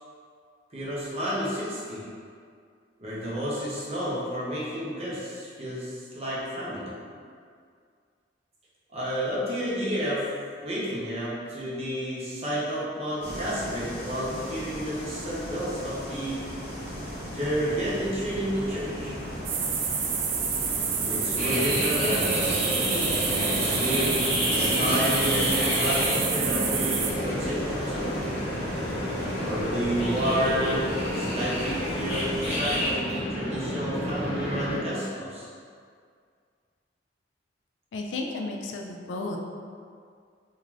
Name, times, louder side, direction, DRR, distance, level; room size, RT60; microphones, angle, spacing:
voice 1, 0.7-2.1 3.0-6.9 8.9-10.3 10.6-16.5 17.2-19.2 21.0-22.3 23.3-24.2 24.6-28.2 29.4-35.5, equal, 35° right, -7 dB, 0.6 m, -31 dB
sound 1, 13.2-33.0, equal, 40° left, 0.9 m, -36 dB
sound 2, 19.5-27.1, right 6 dB, 85° right, 0.3 m, -28 dB
sound 3, 21.4-34.8, equal, 15° left, 1.1 m, -29 dB
voice 2, 37.9-39.4, left 3 dB, 70° left, 2 dB, 0.3 m, -33 dB
2.5 x 2.3 x 3.1 m, 2.1 s
head